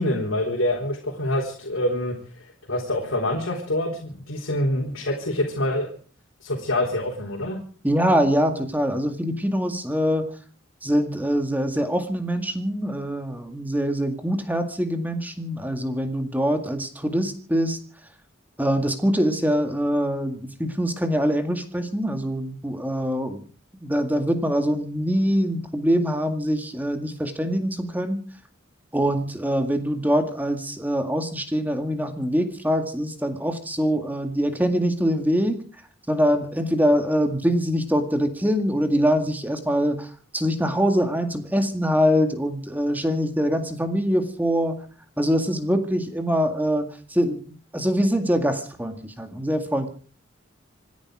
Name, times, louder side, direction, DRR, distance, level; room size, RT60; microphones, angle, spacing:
voice 1, 0.0-5.9 6.4-7.6, left 1 dB, 80° left, 0 dB, 3.7 m, -26 dB
voice 2, 7.8-10.3 10.8-17.8 18.6-23.4 23.8-28.2 28.9-35.6 36.1-44.8 45.2-49.9, equal, 10° right, 6 dB, 2.0 m, -24 dB
27.0 x 10.5 x 4.9 m, 0.42 s
head